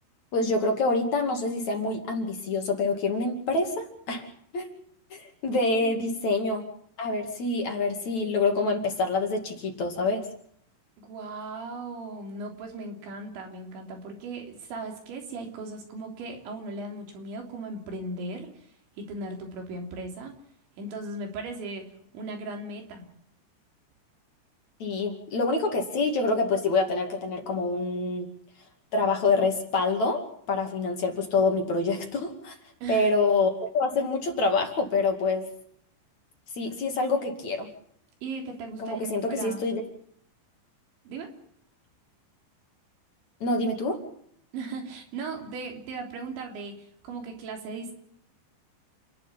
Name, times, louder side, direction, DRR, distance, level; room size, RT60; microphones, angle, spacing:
voice 1, 0.3-4.3 4.5-4.7 5.1-6.6 7.0-10.2 24.8-28.3 28.9-30.2 30.5-32.6 32.9-35.4 36.6-37.7 38.8-39.8 43.4-44.0, left 3 dB, 45° left, 4 dB, 3.3 m, -26 dB
voice 2, 11.0-18.5 19.0-20.3 20.8-21.9 22.1-23.1 32.8-33.1 38.2-39.0 39.3-39.7 41.1-41.3 44.5-46.8 47.0-47.9, right 3 dB, 85° right, 3 dB, 5.7 m, -37 dB
29.0 x 11.0 x 9.9 m, 0.67 s
omnidirectional pair, 5.1 m